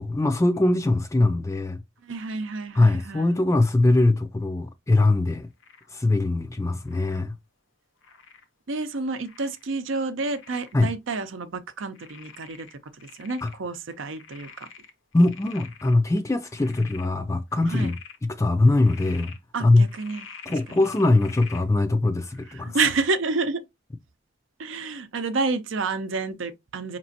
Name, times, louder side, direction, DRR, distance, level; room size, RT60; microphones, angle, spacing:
voice 1, 0.0-1.8 2.7-5.5 5.9-7.3 10.7-10.9 13.4-13.5 15.1-18.0 18.2-19.3 19.6-19.9 20.5-22.8, left 2 dB, 15° left, 0.3 m, -21 dB
voice 2, 2.0-3.4 8.7-12.7 13.0-14.5 17.7-17.9 19.5-20.3 20.7-20.8 22.6-23.6 24.6-27.0, right 3 dB, 75° right, 0.6 m, -29 dB
Frog, 5.6-5.9 6.8-7.2 8.0-8.5 9.2-9.7 10.2-10.8 11.2-11.3 11.9-13.6 13.9-15.9 16.4-17.1 17.5-18.2 18.7-19.4 19.9-21.7 22.3-22.5, left 6 dB, 80° left, 0.9 m, -46 dB
5.1 x 3.0 x 2.7 m
head